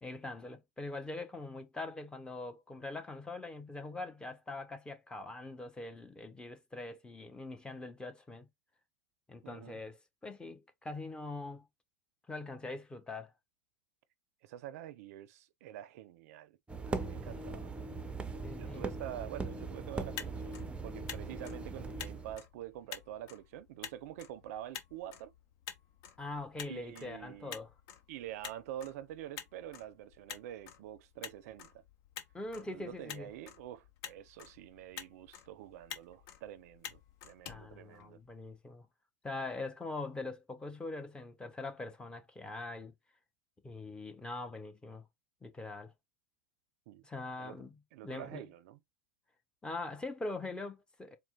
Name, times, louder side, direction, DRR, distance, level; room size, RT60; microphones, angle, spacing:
voice 1, 0.0-8.5 9.3-11.7 12.3-13.3 17.2-17.5 18.4-18.9 26.2-27.7 32.3-33.3 37.5-38.9 39.2-42.9 43.6-45.0 45.4-45.9 47.0-48.5 49.6-51.2, left 2 dB, 10° left, 0.8 m, -43 dB
voice 2, 9.4-9.8 14.4-16.6 16.9-17.7 18.6-25.3 26.6-27.6 28.1-31.8 32.6-38.2 46.9-47.1 47.4-47.6 47.9-48.8, right 12 dB, 65° right, 0.5 m, -47 dB
sound 1, 16.7-22.4, right 3 dB, 10° right, 0.6 m, -40 dB
Motor vehicle (road), 20.0-38.5, left 9 dB, 55° left, 0.9 m, -50 dB
4.3 x 2.1 x 3.7 m
hypercardioid pair, 105°, 9 cm